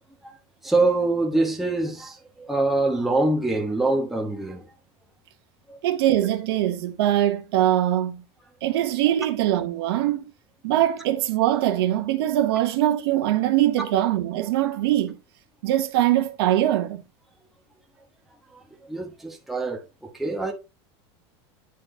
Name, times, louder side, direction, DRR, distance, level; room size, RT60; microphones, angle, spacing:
voice 1, 0.6-4.7 5.7-5.8 18.9-19.8 20.1-20.5, right 2 dB, ahead, 1.1 m, -24 dB
voice 2, 5.8-8.2 8.6-10.2 10.6-15.2 15.6-17.0, right 13 dB, 70° right, 1.2 m, -22 dB
9.9 x 4.4 x 3.8 m
supercardioid pair, 175°, 14 cm